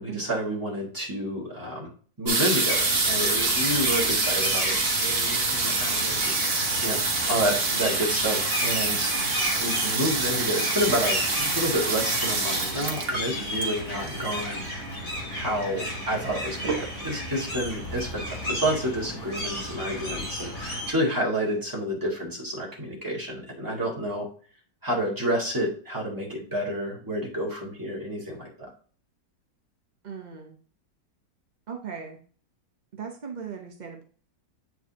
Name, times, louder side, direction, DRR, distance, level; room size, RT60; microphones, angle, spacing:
voice 1, 0.0-1.9 2.2-9.1 9.6-14.6 15.3-24.3 24.8-28.7, equal, 10° right, -5 dB, 1.9 m, -29 dB
sound 1, 2.3-14.8 15.6-15.7 15.9-16.3 16.6-17.2 17.7-17.8 18.0-18.1, right 3 dB, 35° right, 1.4 m, -26 dB
sound 2, 2.7-20.9, equal, 60° left, 4.0 m, -34 dB
voice 2, 30.0-30.6 31.7-32.2 32.9-34.0, right 6 dB, 75° right, 3 dB, 0.4 m, -38 dB
8.2 x 4.6 x 2.8 m, 0.44 s
omnidirectional pair, 1.9 m